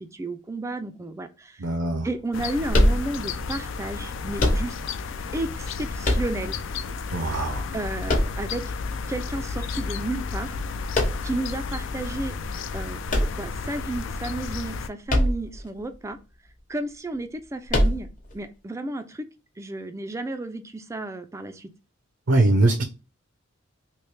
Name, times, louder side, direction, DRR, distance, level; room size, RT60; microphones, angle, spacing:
voice 1, 0.0-1.7 2.0-4.7 5.3-6.6 7.7-8.7 9.1-10.6 10.9-12.4 12.7-16.2 16.7-18.1 18.3-19.3 19.6-21.7, right 2 dB, 15° right, 0.3 m, -32 dB
voice 2, 1.6-2.1 7.1-7.7 22.3-22.8, right 2 dB, 70° right, 0.6 m, -21 dB
sound 1, 2.3-14.9, left 4 dB, 65° left, 0.4 m, -32 dB
sound 2, 2.7-3.5 4.4-5.1 6.0-6.7 8.1-8.9 10.9-11.5 13.1-14.0 15.1-15.6 15.9-16.0 17.7-18.3, left 1 dB, 40° left, 0.9 m, -23 dB
3.1 x 2.8 x 3.2 m
head